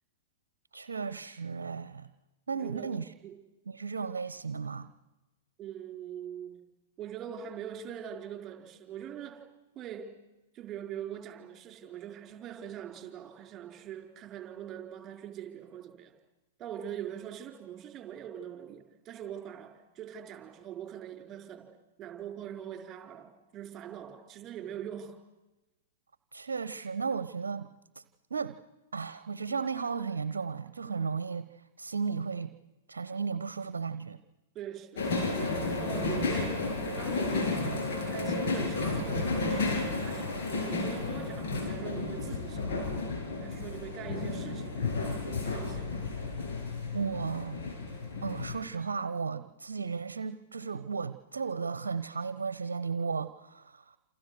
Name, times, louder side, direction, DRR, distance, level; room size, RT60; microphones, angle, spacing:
voice 1, 0.7-2.1 2.5-3.1 3.7-4.9 26.3-27.7 27.9-28.0 28.3-28.6 28.9-31.5 31.8-32.5 32.9-34.2 46.9-47.6 48.2-54.0, right 5 dB, 70° right, 14 dB, 1.0 m, -34 dB
voice 2, 2.5-3.3 5.6-6.6 7.0-9.4 9.7-10.2 10.5-16.1 16.6-21.7 22.0-25.2 34.5-43.0 43.4-46.0, right 9 dB, 25° right, 3 dB, 4.9 m, -43 dB
sound 1, 34.9-48.6, left 3 dB, 50° left, 7.5 m, -32 dB
28.5 x 28.0 x 6.4 m, 1.1 s
figure-of-eight pair, 105°, 0 cm